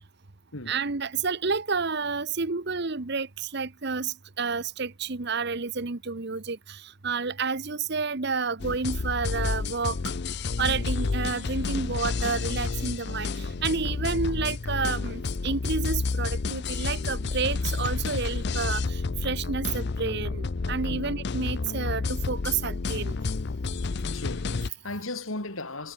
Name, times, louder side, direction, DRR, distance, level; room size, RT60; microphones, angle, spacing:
voice 1, 0.7-10.0 10.6-23.2, right 4 dB, 55° right, 1.1 m, -30 dB
sound 1, 8.6-24.7, left 4 dB, 55° left, 0.6 m, -30 dB
voice 2, 24.1-25.9, left 2 dB, 75° left, 4.3 m, -36 dB
head